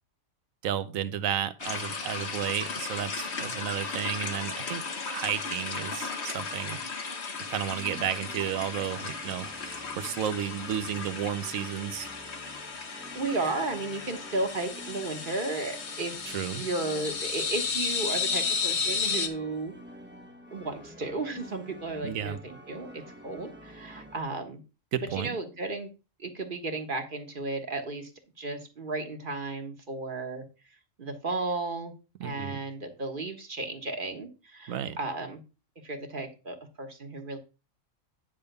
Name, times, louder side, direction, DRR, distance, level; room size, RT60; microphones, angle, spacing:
voice 1, 0.6-6.8 7.5-9.5 10.0-12.1 16.3-16.6 22.0-22.4 24.9-25.4 32.2-32.6 34.7-35.0, right 9 dB, 80° right, 1.2 m, -32 dB
sound 1, 1.6-19.3, left 5 dB, 55° left, 1.4 m, -34 dB
sound 2, 7.7-24.2, equal, 10° right, 0.8 m, -49 dB
voice 2, 13.1-16.1 16.5-19.7 20.5-24.6 25.1-25.9 26.2-28.1 28.4-30.4 31.0-31.9 32.2-35.4 35.8-37.4, right 3 dB, 40° right, 1.5 m, -34 dB
10.0 x 3.5 x 6.7 m
omnidirectional pair, 1.4 m